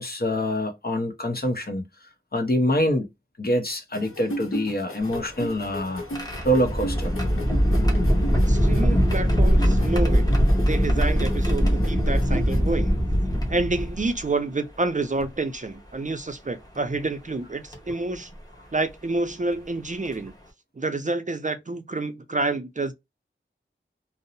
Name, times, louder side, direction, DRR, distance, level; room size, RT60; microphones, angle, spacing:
voice 1, 0.0-1.9 2.3-3.1 3.4-6.0 6.4-7.1, equal, 45° left, 0.8 m, -25 dB
sound 1, 3.9-12.6, equal, 80° left, 0.8 m, -37 dB
sound 2, 5.0-14.3 15.2-15.3 16.8-17.0 17.7-17.9 19.5-19.6 20.1-20.3, equal, 20° left, 0.9 m, -22 dB
voice 2, 8.5-10.3 10.7-12.9 13.5-18.3 18.7-20.3 20.8-22.9, right 3 dB, 40° right, 0.4 m, -28 dB
2.6 x 2.0 x 2.6 m
wide cardioid pair, 55°, 21 cm